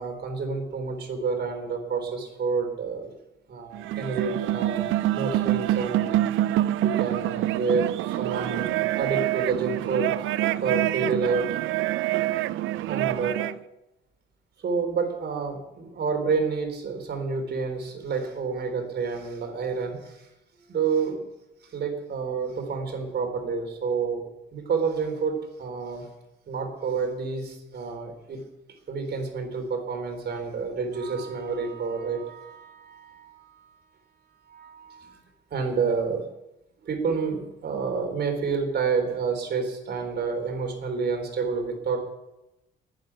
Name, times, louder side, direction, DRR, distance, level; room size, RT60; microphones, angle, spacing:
voice 1, 0.0-3.1 3.5-6.2 6.8-10.1 10.6-11.5 12.9-13.5 14.6-20.2 20.7-21.2 21.7-24.3 24.5-26.0 26.5-28.4 28.9-33.6 34.5-35.2 35.5-36.2 36.8-42.0, right 5 dB, 55° right, 4 dB, 3.9 m, -29 dB
sound 1, 3.7-13.6, right 14 dB, 85° right, 0.5 m, -26 dB
10.5 x 9.9 x 9.9 m, 0.92 s
cardioid pair, 90°, 20 cm